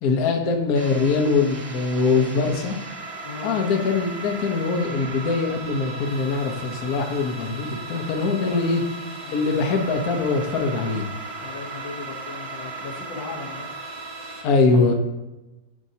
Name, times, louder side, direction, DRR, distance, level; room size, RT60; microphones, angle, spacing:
voice 1, 0.0-2.8 3.4-8.8 9.3-11.0 14.4-14.9, left 4 dB, 55° left, 3 dB, 1.3 m, -22 dB
sound 1, 0.8-14.4, right 3 dB, 75° right, 1.9 m, -36 dB
voice 2, 2.1-2.7 3.2-3.6 8.5-8.9 9.2-9.8 10.5-10.9 11.4-13.7, left 4 dB, 75° left, 1 dB, 1.7 m, -38 dB
12.5 x 5.1 x 2.8 m, 1.0 s
omnidirectional pair, 2.1 m